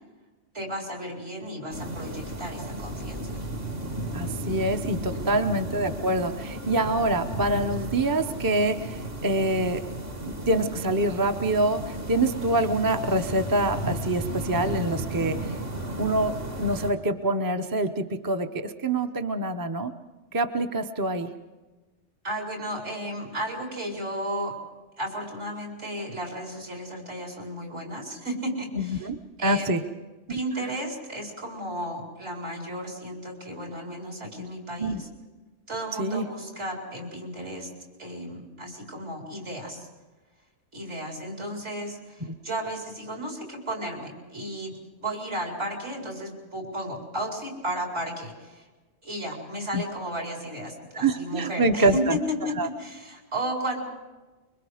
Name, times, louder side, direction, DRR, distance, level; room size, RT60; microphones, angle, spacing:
voice 1, 0.5-3.4 5.1-5.4 22.2-24.6 25.0-29.1 29.4-29.7 30.3-35.1 35.7-37.7 38.0-39.9 40.7-48.7 49.0-53.8, equal, 65° right, 0 dB, 4.9 m, -34 dB
sound 1, 1.7-16.9, right 1 dB, 50° right, 2.1 m, -34 dB
voice 2, 4.1-9.8 10.2-15.6 16.0-19.9 20.3-21.3 28.8-29.2 29.4-29.8 34.4-34.5 34.8-35.0 36.0-36.2 49.7-49.8 50.9-52.2 52.6-52.7, right 2 dB, 20° right, 6 dB, 0.7 m, -25 dB
25.0 x 23.5 x 5.0 m, 1.2 s
omnidirectional pair, 1.3 m